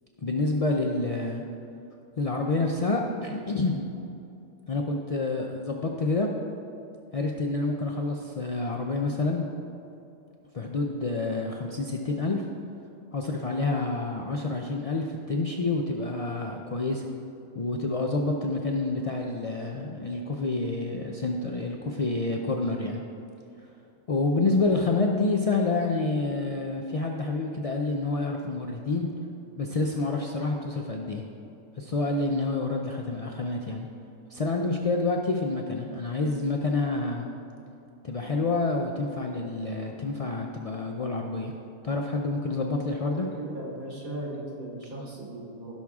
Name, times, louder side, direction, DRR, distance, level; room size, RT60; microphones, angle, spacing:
voice 1, 0.2-1.4 2.2-3.9 4.7-6.3 7.1-9.5 10.5-12.4 13.1-17.0 17.5-23.0 24.1-29.1 29.6-31.2 31.8-33.9 34.3-37.3 38.0-41.5 41.8-43.3, left 3 dB, 60° left, 1 dB, 0.3 m, -28 dB
voice 2, 43.2-45.7, right 1 dB, 85° right, -4 dB, 2.4 m, -37 dB
16.0 x 6.2 x 3.6 m, 2.7 s
omnidirectional pair, 1.4 m